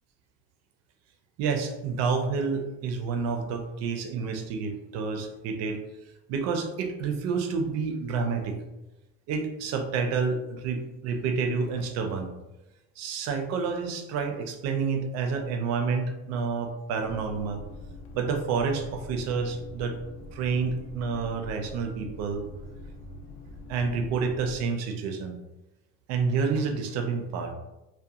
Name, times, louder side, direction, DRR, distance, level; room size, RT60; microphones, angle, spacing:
voice 1, 1.4-5.8 6.3-8.6 9.3-12.3 13.0-17.6 18.1-20.0 20.3-22.4 23.7-25.3 26.1-27.5, right 5 dB, 55° right, 5 dB, 0.4 m, -29 dB
sound 1, 17.0-24.7, left 1 dB, 75° left, 0.5 m, -44 dB
2.8 x 2.2 x 2.3 m, 0.99 s
cardioid pair, 150°, 33 cm